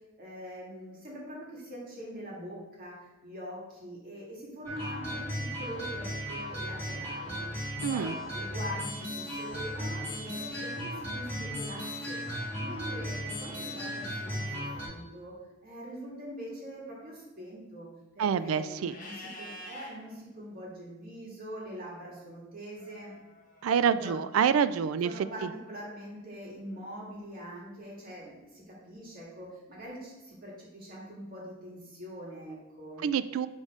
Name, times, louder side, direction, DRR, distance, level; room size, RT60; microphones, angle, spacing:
voice 1, 0.2-3.0 3.2-7.4 7.9-12.2 12.6-17.9 18.2-23.1 23.9-24.4 25.0-33.1, equal, 45° right, -4 dB, 2.2 m, -43 dB
sound 1, 4.7-14.9, equal, 10° left, 1.9 m, -36 dB
voice 2, 7.8-8.2 18.2-19.0 23.6-25.1 25.4-25.5 33.0-33.5, right 7 dB, 80° right, 14 dB, 0.3 m, -27 dB
Livestock farm animals working animals, 18.9-19.9 22.8-23.7, left 1 dB, 40° left, 1.5 m, -46 dB
6.2 x 3.7 x 5.0 m, 1.1 s
head